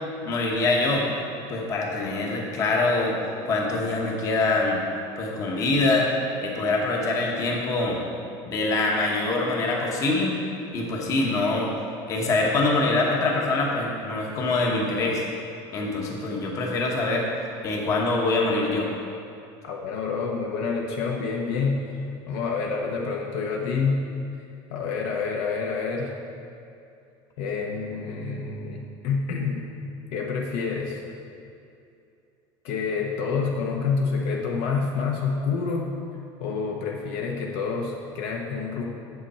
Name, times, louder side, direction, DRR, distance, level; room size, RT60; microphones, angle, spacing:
voice 1, 0.2-1.0 1.5-3.1 3.4-4.8 5.2-6.1 6.4-8.0 8.5-10.4 10.7-11.7 12.1-15.2 15.7-17.3 17.6-18.9, left 2 dB, 30° left, -1 dB, 1.2 m, -24 dB
voice 2, 19.6-24.1 24.7-26.1 27.4-29.7 30.1-31.0 32.6-35.9 36.4-38.8, left 5 dB, 60° left, 0 dB, 0.9 m, -28 dB
8.1 x 7.8 x 4.3 m, 2.6 s
cardioid pair, 175°, 11 cm